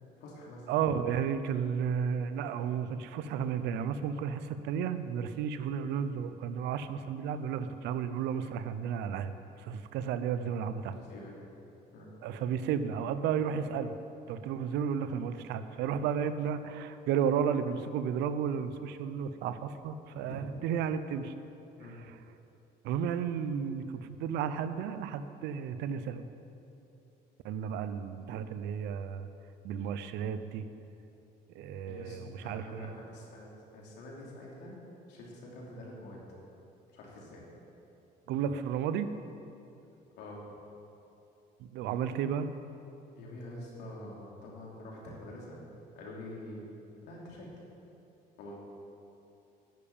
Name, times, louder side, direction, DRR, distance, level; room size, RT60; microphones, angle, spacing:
voice 1, 0.2-0.7 10.9-11.3 11.9-12.1 20.2-20.3 21.8-22.0 31.9-34.7 35.1-36.2 36.9-37.4 40.2-40.6 43.2-45.6 46.0-46.7 47.1-47.5 48.4-48.6, left 1 dB, 85° left, -3 dB, 3.0 m, -46 dB
voice 2, 0.7-9.3 9.6-10.9 12.2-13.9 14.3-21.3 21.9-22.2 22.8-26.3 27.4-29.3 29.6-30.7 31.5-32.9 38.3-39.1 41.6-42.5, right 7 dB, 85° right, 11 dB, 0.7 m, -33 dB
10.5 x 6.9 x 8.7 m, 2.8 s
cardioid pair, 110°, 17 cm